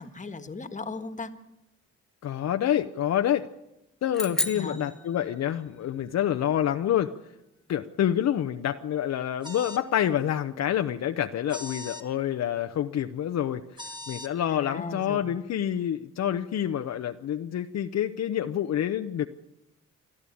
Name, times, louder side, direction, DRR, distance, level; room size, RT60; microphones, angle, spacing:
voice 1, 0.0-1.3 4.3-4.8 14.5-15.3, left 3 dB, 25° left, 9 dB, 1.7 m, -37 dB
voice 2, 2.2-3.5 4.0-7.1 7.7-19.3, left 10 dB, 60° left, 7 dB, 0.8 m, -27 dB
sound 1, 4.1-5.8, left 1 dB, ahead, 1.7 m, -33 dB
sound 2, 9.4-9.9 11.5-12.1 13.8-14.3, left 1 dB, 15° right, 2.2 m, -40 dB
28.0 x 11.0 x 8.6 m, 0.91 s
cardioid pair, 90°, 30 cm